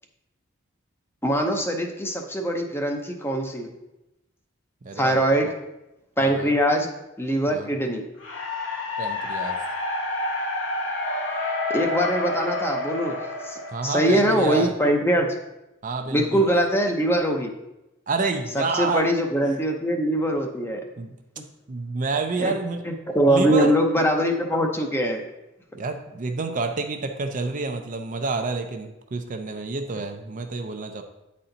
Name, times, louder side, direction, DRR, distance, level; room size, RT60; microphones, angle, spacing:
voice 1, 1.2-3.7 5.0-5.5 6.2-6.9 7.2-8.0 11.7-13.2 13.4-15.3 16.1-17.5 18.5-20.8 22.4-22.5 22.8-25.2, right 1 dB, 10° left, 3 dB, 0.7 m, -22 dB
voice 2, 4.8-5.5 6.2-6.5 7.5-7.7 9.0-9.6 13.7-14.7 15.8-16.5 18.1-19.1 19.4-19.6 21.0-21.2 21.7-22.8 23.3-23.8 25.7-31.0, right 3 dB, 40° right, 5 dB, 0.5 m, -28 dB
sound 1, 8.2-14.3, left 2 dB, 65° left, 1.4 m, -29 dB
8.8 x 4.3 x 3.9 m, 0.94 s
head